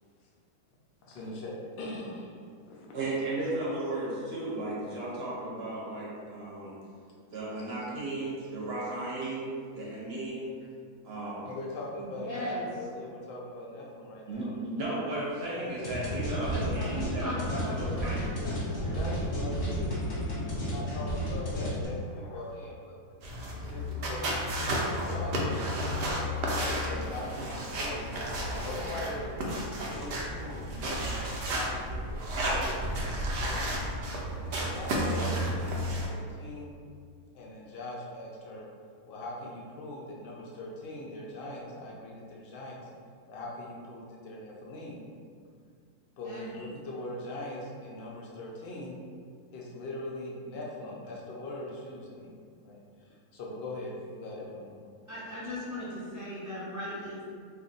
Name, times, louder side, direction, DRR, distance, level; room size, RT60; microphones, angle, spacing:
voice 1, 1.0-2.9 11.2-14.6 15.5-15.6 16.3-16.4 18.4-26.1 26.7-28.2 28.6-32.7 33.3-33.6 34.4-36.7 37.3-38.7 39.1-42.9 43.3-45.0 46.2-49.0 49.5-52.3 52.6-54.8, left 1 dB, 90° left, -3 dB, 0.5 m, -41 dB
voice 2, 2.9-6.8 7.3-10.5 11.0-11.5 14.3-18.4, right 2 dB, 55° right, -6 dB, 0.8 m, -35 dB
voice 3, 12.0-12.7 16.5-19.0 46.2-46.6 55.1-57.2, equal, 25° right, -10 dB, 0.4 m, -38 dB
sound 1, 15.8-21.8, equal, 40° left, 0.7 m, -32 dB
sound 2, 23.2-36.1, equal, 85° right, 0.5 m, -32 dB
2.6 x 2.4 x 3.8 m, 2.2 s
omnidirectional pair, 1.6 m